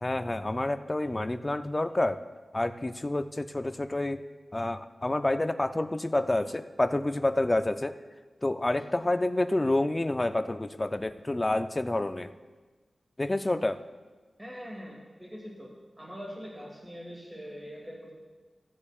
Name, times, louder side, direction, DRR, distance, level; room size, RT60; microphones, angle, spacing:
voice 1, 0.0-2.2 2.5-4.2 4.5-7.9 8.4-12.3 13.2-13.8, left 2 dB, 25° left, 9 dB, 0.5 m, -28 dB
voice 2, 14.4-15.7 16.0-18.1, equal, 15° right, -4 dB, 2.2 m, -42 dB
16.0 x 9.7 x 2.4 m, 1.3 s
wide cardioid pair, 100°, 0 cm